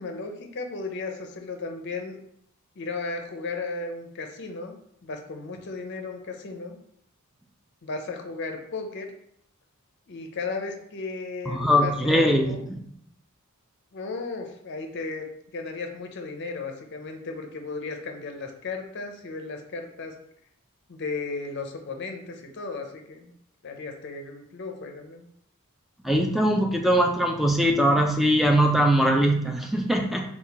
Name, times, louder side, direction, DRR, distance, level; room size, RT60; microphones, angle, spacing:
voice 1, 0.0-2.2 2.8-4.8 5.0-6.8 7.8-9.1 10.1-12.7 13.9-20.1 20.9-23.3 23.6-25.3, left 3 dB, 50° left, 4 dB, 0.6 m, -35 dB
voice 2, 11.5-12.8 26.0-30.2, equal, ahead, 2 dB, 0.4 m, -21 dB
4.1 x 2.4 x 4.0 m, 0.70 s
head